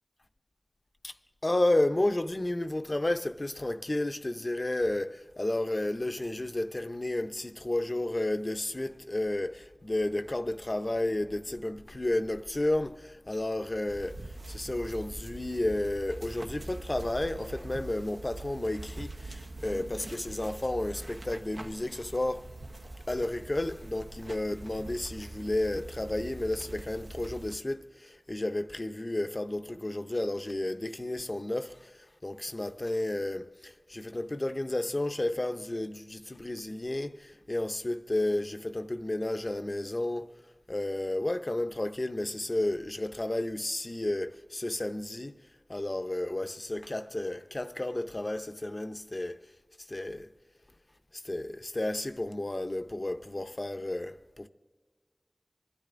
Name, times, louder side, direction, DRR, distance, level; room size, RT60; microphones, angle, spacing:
voice 1, 1.4-22.5 23.1-40.3 40.7-45.4 45.7-49.4 49.8-50.3 51.1-54.5, left 1 dB, 45° left, 0.6 m, -32 dB
sound 1, 13.9-27.6, right 2 dB, 70° right, 0.8 m, -43 dB
27.5 x 12.5 x 2.5 m
wide cardioid pair, 40°, 0 cm